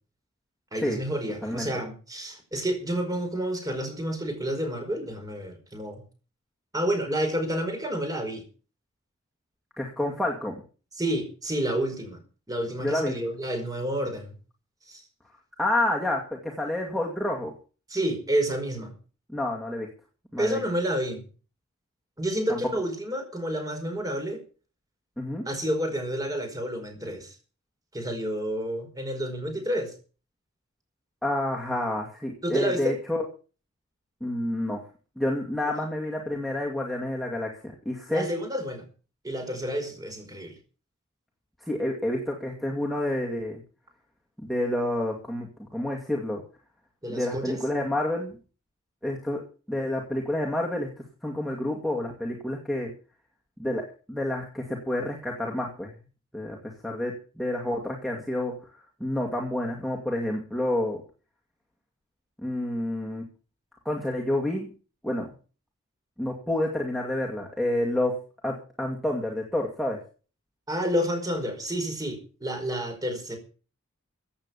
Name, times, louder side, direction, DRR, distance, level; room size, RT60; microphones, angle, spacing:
voice 1, 0.7-6.0 6.7-8.4 11.0-12.2 12.5-14.3 14.9-15.0 17.9-18.9 20.4-21.2 22.2-24.4 25.4-27.3 27.9-29.9 32.4-33.0 38.1-38.8 39.2-40.6 47.0-47.6 70.7-73.4, right 1 dB, 15° right, 5 dB, 4.9 m, -29 dB
voice 2, 9.8-10.6 12.8-13.2 15.6-17.5 19.3-19.9 20.3-20.6 22.5-22.6 25.2-25.5 31.2-33.2 34.2-34.8 35.2-37.5 37.9-38.3 41.7-43.6 44.4-46.4 47.1-48.4 49.0-49.4 49.7-50.9 51.2-52.9 53.6-53.8 54.1-55.9 56.3-56.6 56.8-58.5 59.0-61.0 62.4-63.2 63.8-64.7 65.0-65.3 66.2-68.1 68.4-70.0, left 1 dB, ahead, -2 dB, 2.3 m, -29 dB
15.5 x 8.8 x 7.0 m, 0.38 s
head